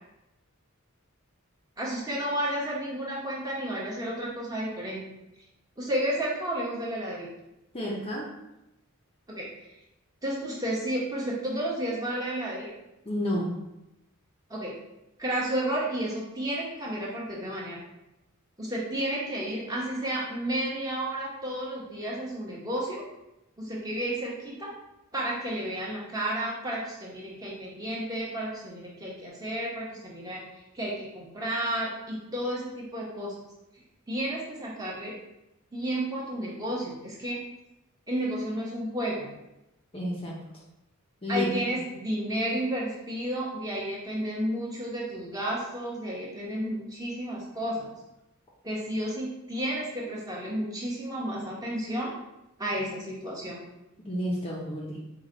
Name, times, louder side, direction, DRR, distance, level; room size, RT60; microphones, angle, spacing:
voice 1, 1.8-5.0 5.8-7.3 9.3-9.5 10.2-12.7 14.5-14.7 15.2-17.8 18.6-23.0 23.6-24.7 25.1-30.4 30.7-33.3 34.1-35.1 35.7-37.4 38.1-39.3 41.3-47.9 48.6-52.1 52.6-53.6, right 1 dB, 15° right, -5 dB, 0.9 m, -32 dB
voice 2, 7.7-8.3 13.1-13.5 39.9-40.3 41.2-41.5 54.1-55.0, left 1 dB, 25° left, -3 dB, 0.5 m, -30 dB
4.7 x 2.2 x 3.8 m, 0.91 s
head